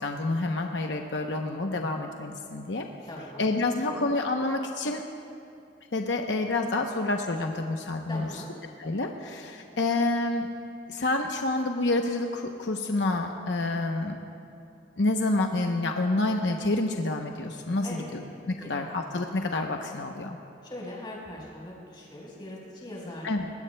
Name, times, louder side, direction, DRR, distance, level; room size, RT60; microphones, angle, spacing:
voice 1, 0.0-2.8 3.4-5.0 5.9-8.3 8.8-10.5 10.9-14.2 15.0-18.2 18.7-20.4 23.2-23.5, left 2 dB, 80° left, 3 dB, 0.8 m, -28 dB
voice 2, 3.0-3.5 3.9-4.0 8.1-8.5 17.8-18.3 18.6-18.7 20.6-23.3, left 1 dB, 25° left, -4 dB, 4.3 m, -40 dB
25.5 x 20.5 x 2.2 m, 2.5 s
head